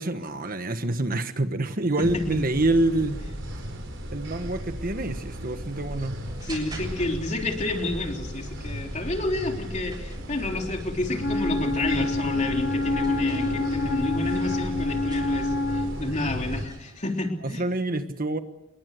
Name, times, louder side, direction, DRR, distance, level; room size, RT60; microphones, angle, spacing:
voice 1, 0.0-3.2 4.1-6.2 17.4-18.4, right 2 dB, 45° right, 9 dB, 1.4 m, -26 dB
voice 2, 2.0-2.4 6.4-17.7, left 2 dB, 35° left, 3 dB, 3.5 m, -30 dB
sound 1, 2.0-16.6, equal, 65° right, 5.1 m, -35 dB
sound 2, 3.4-17.2, right 2 dB, 20° right, 7.6 m, -50 dB
Wind instrument woodwind instrument, 11.2-16.0, left 2 dB, 60° left, 2.4 m, -27 dB
27.0 x 22.0 x 6.7 m, 0.91 s
head